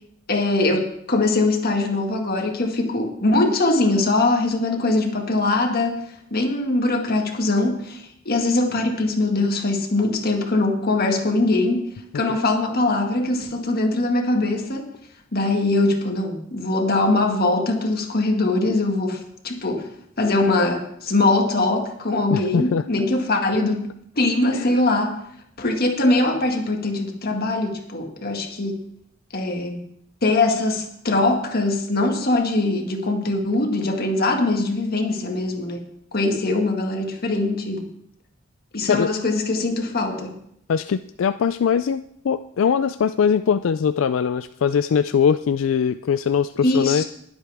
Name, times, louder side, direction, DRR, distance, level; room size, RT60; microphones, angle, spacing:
voice 1, 0.3-6.0 6.3-14.9 15.3-19.9 20.2-23.9 24.1-25.2 25.6-28.8 29.3-29.8 30.2-35.8 36.1-37.9 38.7-40.4 46.6-47.0, left 2 dB, 50° left, 3 dB, 1.8 m, -22 dB
voice 2, 22.3-22.8 24.5-24.7 38.9-39.1 40.7-47.0, left 7 dB, 80° left, 11 dB, 0.4 m, -21 dB
20.5 x 8.0 x 3.5 m, 0.72 s
head